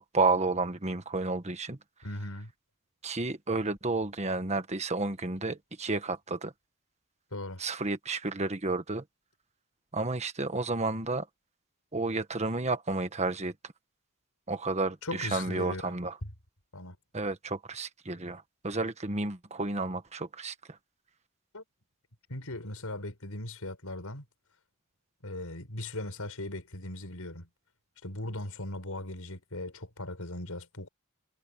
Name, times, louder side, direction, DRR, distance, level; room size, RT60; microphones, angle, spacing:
voice 1, 0.0-1.8 3.0-6.5 7.6-9.0 9.9-11.2 11.9-13.5 14.5-16.2 17.1-20.5, right 3 dB, 30° right, 1.5 m, -31 dB
voice 2, 2.0-2.5 7.3-7.6 15.0-15.9 16.2-16.3 16.7-17.0 21.5-21.6 22.3-24.2 25.2-27.5 28.0-30.9, left 1 dB, 75° left, 5.7 m, -38 dB
head